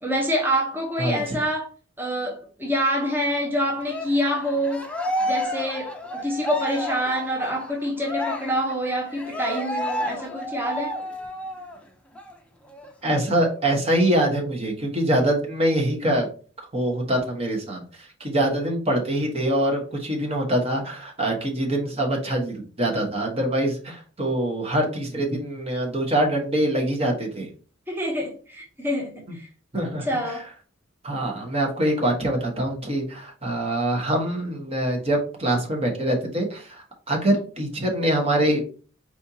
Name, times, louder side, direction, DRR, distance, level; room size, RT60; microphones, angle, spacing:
voice 1, 0.0-1.7 2.0-4.9 5.2-10.9 27.9-29.5 29.8-30.5, equal, 10° right, 1.0 m, -26 dB
Cheering, 3.8-11.8 12.1-12.3 12.7-13.7, equal, 5° left, 0.6 m, -31 dB
voice 2, 13.0-16.3 16.7-27.5 29.7-30.1 31.0-38.6, right 1 dB, 30° right, 1.3 m, -24 dB
4.3 x 4.3 x 2.8 m
head